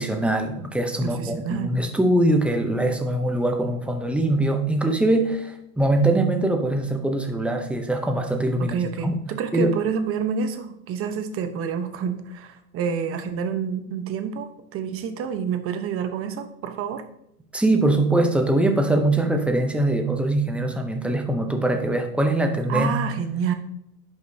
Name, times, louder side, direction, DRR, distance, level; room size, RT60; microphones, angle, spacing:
voice 1, 0.0-8.8 9.0-9.2 9.5-9.7 17.5-23.2, right 1 dB, 5° right, 4 dB, 0.6 m, -22 dB
voice 2, 1.0-1.8 8.6-17.0 22.7-23.5, right 7 dB, 30° right, 7 dB, 0.9 m, -28 dB
11.0 x 5.3 x 2.7 m, 0.77 s
supercardioid pair, 125°, 47 cm